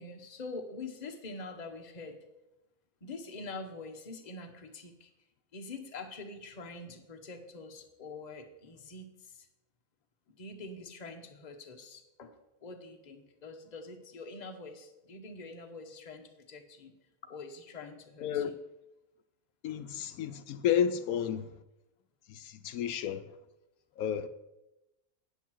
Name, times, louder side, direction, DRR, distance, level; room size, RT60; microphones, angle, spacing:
voice 1, 0.0-2.2 3.0-5.1 5.5-9.5 10.3-16.9 17.2-18.6, left 3 dB, 35° left, 1.0 m, -45 dB
voice 2, 18.2-18.5 19.6-21.5 22.3-23.2 24.0-24.3, left 9 dB, 80° left, 1.1 m, -31 dB
9.0 x 8.0 x 4.6 m
omnidirectional pair, 1.5 m